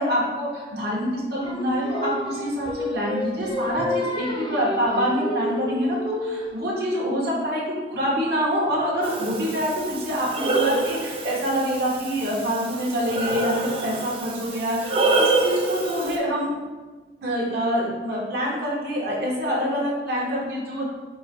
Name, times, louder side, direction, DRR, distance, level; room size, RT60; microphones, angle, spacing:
voice 1, 0.0-7.6 7.9-16.5 17.2-20.8, equal, 65° right, -4 dB, 1.2 m, -26 dB
Singing, 1.4-6.6, left 1 dB, 30° left, 0.5 m, -30 dB
Breathing, 9.0-16.2, right 3 dB, 30° right, 0.5 m, -26 dB
4.5 x 2.2 x 4.5 m, 1.3 s
head